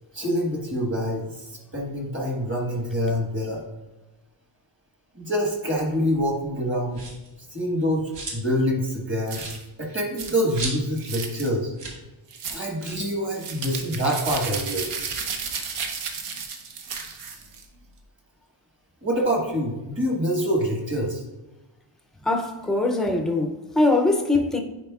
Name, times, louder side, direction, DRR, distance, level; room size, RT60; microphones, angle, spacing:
voice 1, 0.1-3.6 5.1-7.0 7.5-9.4 9.8-11.7 12.5-14.9 19.0-21.2, equal, 25° right, 1.3 m, -26 dB
sound 1, 6.9-7.3 7.8-8.6 8.9-9.0 9.3-11.1 11.4-11.5 11.7-12.0 12.3-12.4 12.8-13.1 13.9-15.6 16.0-17.5, right 2 dB, 55° right, 1.5 m, -38 dB
sound 2, 9.3-9.6 10.2-10.3 11.0-11.5 12.3-12.6 13.3-17.6, right 5 dB, 85° right, 0.9 m, -33 dB
voice 2, 22.2-24.6, left 2 dB, ahead, 0.4 m, -22 dB
9.6 x 4.2 x 2.3 m
wide cardioid pair, 175°, 49 cm